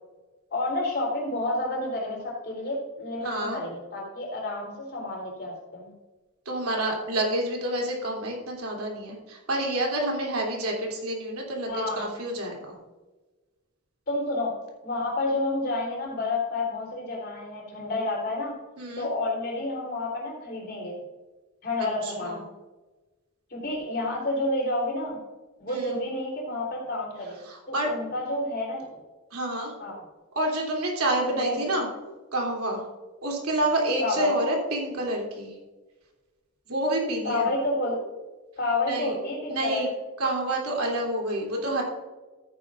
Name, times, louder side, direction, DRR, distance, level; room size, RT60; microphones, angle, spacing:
voice 1, 0.5-5.9 11.7-12.1 14.1-14.5 14.8-18.5 19.0-21.0 21.6-22.4 23.5-25.2 25.6-27.4 27.7-29.0 29.8-30.0 31.3-31.8 34.0-34.3 37.2-38.0 38.6-39.9, left 2 dB, 50° left, -3 dB, 3.5 m, -30 dB
voice 2, 3.2-3.6 6.4-12.8 18.8-19.1 22.0-22.4 25.7-25.9 27.4-27.9 29.3-29.7 30.3-31.9 32.3-32.8 33.2-35.5 36.7-37.5 38.9-39.1 39.5-39.9 40.2-41.8, right 1 dB, 75° right, 0 dB, 3.1 m, -28 dB
14.0 x 9.7 x 2.5 m, 1.2 s
head